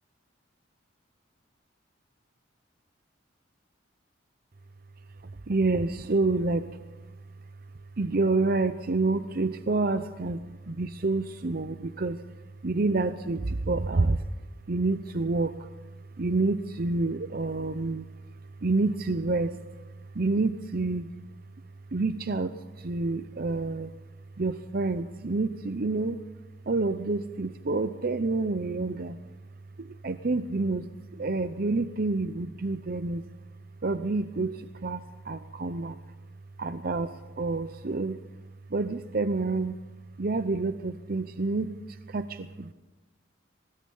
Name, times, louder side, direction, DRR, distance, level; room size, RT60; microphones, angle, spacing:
voice 1, 5.2-6.8 8.0-12.2 12.6-14.3 14.7-15.8 16.2-21.2 21.9-23.9 24.4-26.2 26.7-29.2 29.8-33.3 33.8-36.0 36.6-38.2 38.7-39.8 40.2-42.7, right 3 dB, 50° right, 11 dB, 0.7 m, -28 dB
23.5 x 20.0 x 5.5 m, 1.1 s
head